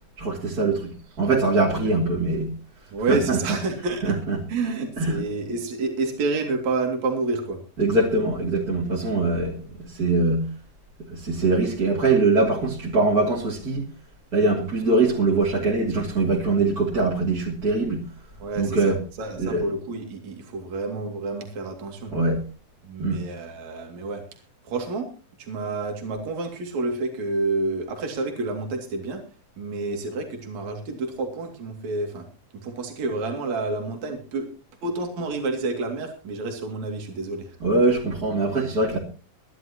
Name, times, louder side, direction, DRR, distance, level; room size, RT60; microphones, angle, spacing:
voice 1, 0.2-0.9 1.2-2.5 3.1-3.4 4.0-4.4 5.0-5.2 7.8-10.5 11.1-13.9 14.3-18.0 18.6-19.0 19.4-19.7 22.1-22.4 23.0-23.2 37.6-39.0, right 3 dB, 30° right, 2.7 m, -22 dB
voice 2, 2.9-4.1 4.5-7.6 18.4-22.1 22.8-24.2 24.6-25.1 25.4-29.2 29.6-32.3 32.6-34.5 34.8-37.6, right 3 dB, 65° right, 3.8 m, -29 dB
23.5 x 11.5 x 2.9 m
omnidirectional pair, 3.6 m